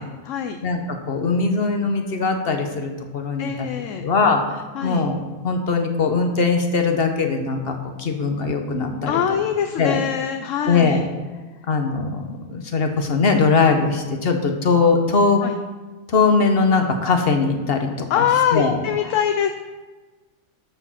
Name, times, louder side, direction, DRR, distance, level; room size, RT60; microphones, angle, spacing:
voice 1, 0.0-0.6 3.4-4.0 4.7-5.0 9.0-11.0 15.4-15.6 18.1-19.5, left 8 dB, 70° left, 7 dB, 0.9 m, -23 dB
voice 2, 0.6-3.5 4.0-4.4 4.8-5.2 5.4-9.2 9.8-10.0 10.7-11.0 11.7-15.4 16.1-17.9 18.2-18.3 18.5-18.8, left 4 dB, 45° left, 5 dB, 1.3 m, -20 dB
13.0 x 4.9 x 5.8 m, 1.3 s
omnidirectional pair, 1.5 m